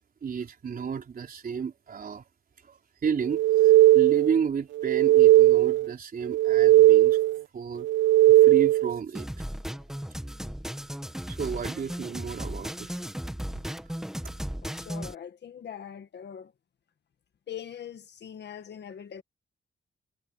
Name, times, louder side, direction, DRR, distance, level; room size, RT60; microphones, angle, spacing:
voice 1, 0.2-2.2 2.6-7.2 7.5-7.9 8.3-9.4 11.3-13.0 13.5-13.6 14.2-14.3, right 6 dB, 50° right, 3.9 m, -32 dB
sound 1, 3.3-4.4 4.8-5.9 6.3-7.4 7.8-9.0, right 15 dB, 75° right, 0.5 m, -18 dB
sound 2, 9.1-15.1, equal, ahead, 1.9 m, -36 dB
voice 2, 14.6-16.5 17.5-19.2, left 9 dB, 60° left, 1.8 m, -42 dB
wide cardioid pair, 150°, 20 cm